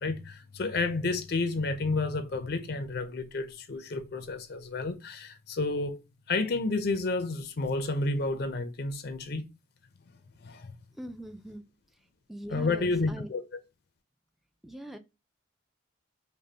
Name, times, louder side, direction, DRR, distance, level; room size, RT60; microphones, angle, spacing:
voice 1, 0.0-6.0 6.3-9.5 10.4-10.7 12.5-13.4, left 3 dB, 50° left, 0.5 m, -30 dB
voice 2, 10.9-11.6 12.3-13.3 14.6-15.0, right 1 dB, ahead, 0.4 m, -41 dB
5.2 x 2.2 x 2.8 m
head